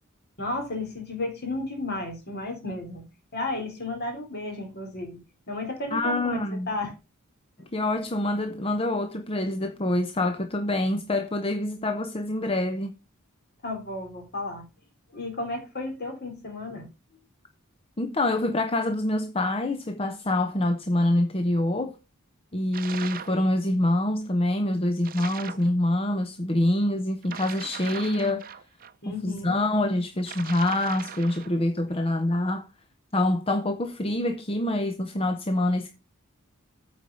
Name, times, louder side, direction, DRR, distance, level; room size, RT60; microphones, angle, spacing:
voice 1, 0.4-3.0 3.3-5.2 5.5-6.9 7.6-7.7 13.6-14.7 15.1-16.9 29.0-29.5, left 2 dB, 50° left, 4.0 m, -33 dB
voice 2, 5.9-6.7 7.7-12.9 18.0-21.9 22.5-28.4 29.1-32.7 33.1-35.9, left 1 dB, 25° left, 0.8 m, -26 dB
sound 1, 22.7-23.4 25.0-25.7 27.2-28.9 30.2-31.6, right 8 dB, 40° right, 0.7 m, -39 dB
9.0 x 5.0 x 6.9 m
head